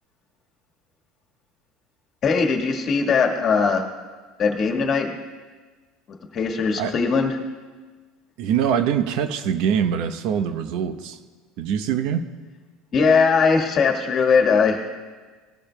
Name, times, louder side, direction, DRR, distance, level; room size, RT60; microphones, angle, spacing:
voice 1, 2.2-3.8 4.4-5.1 6.1-7.3 12.9-14.8, left 5 dB, 35° left, 3 dB, 1.5 m, -20 dB
voice 2, 8.4-11.2 11.6-12.2, right 8 dB, 65° right, 9 dB, 0.8 m, -23 dB
19.0 x 12.0 x 2.2 m, 1.4 s
supercardioid pair, 135°, 0 cm